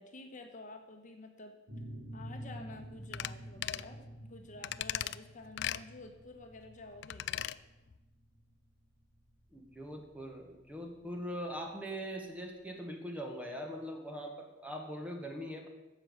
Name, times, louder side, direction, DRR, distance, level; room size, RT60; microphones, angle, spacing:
voice 1, 0.0-1.6 2.1-7.5, left 2 dB, 40° left, 4 dB, 1.2 m, -50 dB
sound 1, 1.7-11.1, equal, 75° right, 3.6 m, -49 dB
sound 2, 3.1-3.3 3.6-3.9 4.6-5.2 5.6-5.8 7.0-7.6 7.9-8.0, left 12 dB, 60° left, 0.4 m, -37 dB
voice 2, 9.5-15.7, equal, 10° right, 2 dB, 1.6 m, -41 dB
10.0 x 7.2 x 8.1 m, 1.0 s
head